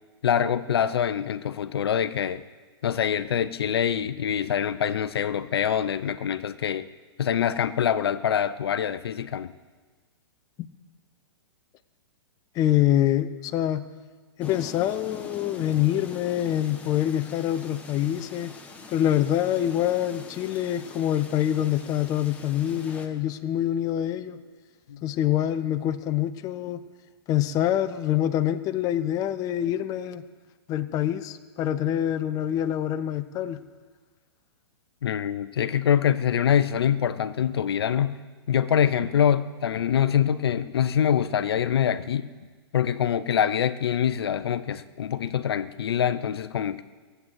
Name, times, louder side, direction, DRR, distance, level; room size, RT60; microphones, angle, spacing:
voice 1, 0.2-2.4 2.8-6.9 7.2-9.5 24.9-25.0 35.0-38.2 38.5-42.3 42.7-46.8, left 9 dB, 65° left, 13 dB, 0.6 m, -25 dB
voice 2, 12.5-13.9 14.4-18.5 18.9-24.4 25.0-26.8 27.3-30.2 30.7-33.6, left 11 dB, 25° left, 10 dB, 0.7 m, -25 dB
sound 1, 14.4-23.1, left 4 dB, 10° left, 1.3 m, -44 dB
17.0 x 8.0 x 7.6 m, 1.4 s
figure-of-eight pair, 115°, 14 cm